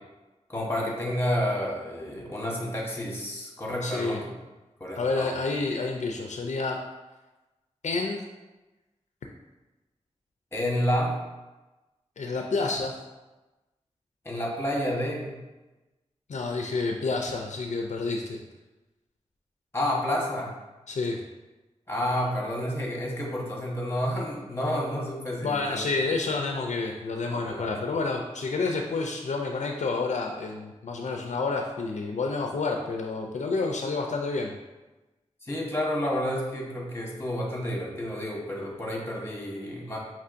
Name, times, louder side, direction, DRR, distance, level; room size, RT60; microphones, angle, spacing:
voice 1, 0.5-4.3 4.8-5.4 10.5-11.2 14.2-15.3 19.7-20.6 21.9-25.9 27.3-27.7 35.4-40.0, equal, 20° left, -2 dB, 1.1 m, -30 dB
voice 2, 3.8-4.2 5.0-6.8 7.8-8.2 12.2-12.9 16.3-18.4 20.9-21.2 25.4-34.5, left 3 dB, 70° left, 2 dB, 0.4 m, -29 dB
5.5 x 3.0 x 2.5 m, 1.1 s
wide cardioid pair, 75°, 12 cm